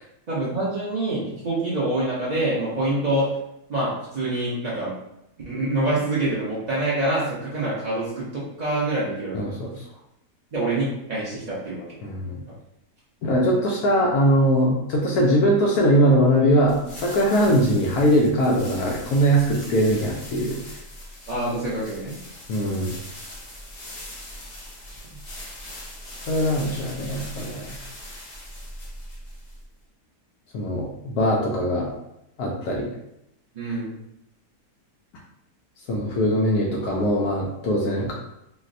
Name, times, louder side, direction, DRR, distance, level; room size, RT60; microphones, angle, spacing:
voice 1, 0.3-3.3 3.7-4.9 5.4-9.5 10.5-11.8 17.5-17.6 21.3-22.2 33.5-33.9, right 2 dB, 70° right, -8 dB, 0.4 m, -26 dB
voice 2, 9.3-9.8 12.0-12.4 13.2-20.6 22.5-22.9 26.3-27.7 30.5-31.9 32.4-32.9 35.9-38.1, equal, 75° left, -2 dB, 1.0 m, -21 dB
sound 1, 16.7-29.8, left 1 dB, 45° left, 0.8 m, -40 dB
4.1 x 2.0 x 2.5 m, 0.84 s
omnidirectional pair, 1.7 m